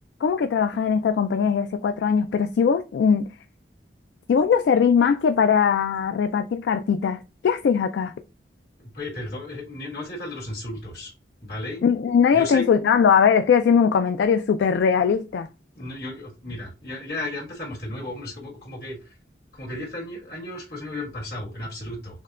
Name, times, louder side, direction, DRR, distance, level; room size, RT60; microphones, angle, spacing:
voice 1, 0.2-3.3 4.3-8.1 11.8-15.5, left 6 dB, 75° left, 0.3 m, -20 dB
voice 2, 8.8-11.1 11.4-11.8 12.3-12.7 15.7-19.0 19.5-22.2, left 1 dB, 60° left, 1.6 m, -34 dB
6.4 x 2.2 x 2.4 m
head